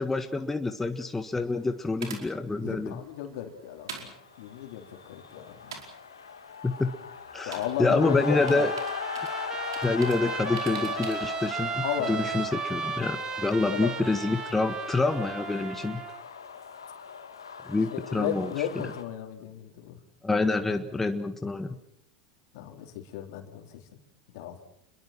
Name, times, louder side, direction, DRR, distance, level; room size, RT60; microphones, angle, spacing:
voice 1, 0.0-3.0 6.6-6.9 7.3-8.7 9.8-16.0 17.6-18.5 20.2-21.7, left 3 dB, 10° left, 7 dB, 1.6 m, -27 dB
sound 1, 0.9-11.4, right 5 dB, 75° right, 4.9 m, -47 dB
voice 2, 2.6-4.1 4.4-5.8 7.5-8.7 11.8-12.2 13.7-13.9 17.9-20.0 22.5-23.8 24.3-24.6, left 10 dB, 60° left, 5 dB, 3.8 m, -34 dB
sound 2, 4.2-19.0, left 6 dB, 85° left, 2.3 m, -39 dB
Trumpet, 8.0-16.2, right 7 dB, 30° right, 2.5 m, -36 dB
29.0 x 22.0 x 6.0 m, 0.71 s
hypercardioid pair, 85°, 2 cm